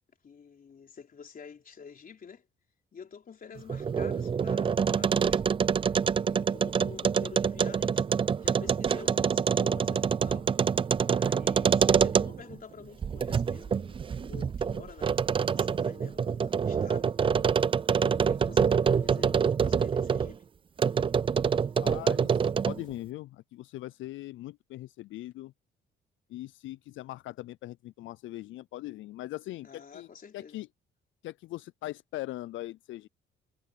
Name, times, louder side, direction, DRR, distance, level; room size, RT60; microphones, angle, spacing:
voice 1, 0.2-2.5 2.9-5.5 5.9-8.0 8.4-10.5 11.0-17.3 17.7-20.4 29.6-30.6, left 6 dB, 45° left, 3.8 m, -49 dB
sound 1, 3.6-12.6 13.0-20.3 20.8-22.9, right 6 dB, 25° right, 0.3 m, -26 dB
voice 2, 21.8-25.5 26.3-30.1 30.3-30.7 31.2-33.1, left 16 dB, 75° left, 0.4 m, -40 dB
cardioid pair, 90°, 20 cm